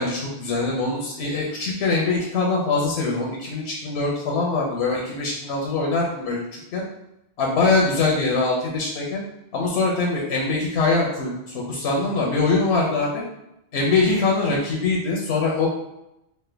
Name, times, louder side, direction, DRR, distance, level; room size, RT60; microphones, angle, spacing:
voice 1, 0.0-6.8 7.4-9.2 9.5-13.2 13.7-15.7, left 3 dB, 85° left, -2 dB, 0.9 m, -23 dB
3.2 x 2.1 x 3.2 m, 0.85 s
omnidirectional pair, 1.1 m